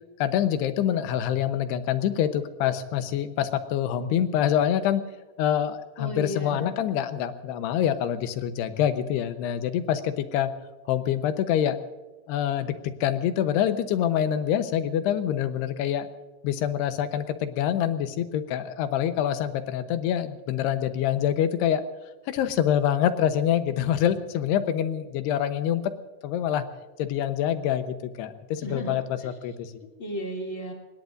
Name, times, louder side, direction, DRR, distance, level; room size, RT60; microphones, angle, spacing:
voice 1, 0.2-5.0 5.4-10.5 10.9-11.8 12.3-16.1 16.4-21.8 22.3-25.9 26.2-26.6 27.0-29.8, left 10 dB, 80° left, 9 dB, 3.0 m, -26 dB
voice 2, 6.0-6.7 28.6-29.0 30.0-30.7, equal, 20° left, 0 dB, 2.8 m, -33 dB
26.0 x 21.0 x 2.6 m, 1.2 s
omnidirectional pair, 4.9 m